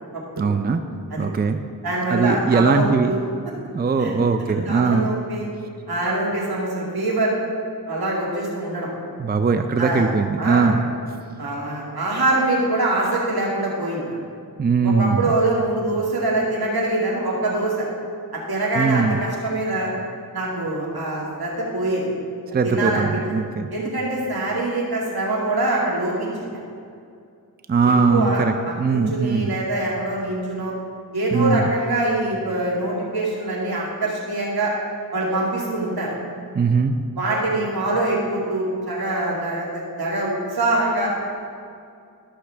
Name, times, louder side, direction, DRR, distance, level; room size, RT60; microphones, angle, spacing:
voice 1, 0.4-0.8 1.2-1.6 2.1-3.1 3.7-5.1 9.2-10.8 14.6-15.3 18.8-19.2 22.5-23.7 27.7-29.5 31.3-31.7 36.5-36.9, right 4 dB, 25° right, 8 dB, 0.5 m, -20 dB
voice 2, 1.8-3.2 4.0-4.1 4.7-5.5 5.9-7.3 7.9-8.9 9.8-10.1 10.4-10.7 11.4-14.2 14.8-17.9 18.3-19.9 20.3-22.1 22.6-23.1 23.7-26.5 27.8-28.5 28.9-30.7 31.1-34.7 35.1-36.1 37.2-41.1, right 2 dB, 80° right, -4 dB, 2.3 m, -24 dB
13.5 x 6.3 x 3.4 m, 2.4 s
cardioid pair, 50°, 37 cm